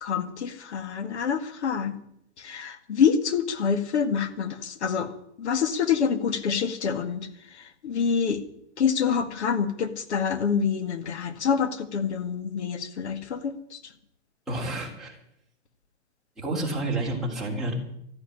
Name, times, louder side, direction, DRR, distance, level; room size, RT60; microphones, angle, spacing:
voice 1, 0.0-2.0 2.4-5.1 5.4-7.3 7.8-8.4 8.8-13.8, left 6 dB, 70° left, 10 dB, 2.0 m, -26 dB
voice 2, 14.5-15.2 16.4-17.7, right 2 dB, ahead, -6 dB, 3.2 m, -29 dB
13.5 x 9.9 x 9.9 m, 0.73 s
hypercardioid pair, 165°, 35 cm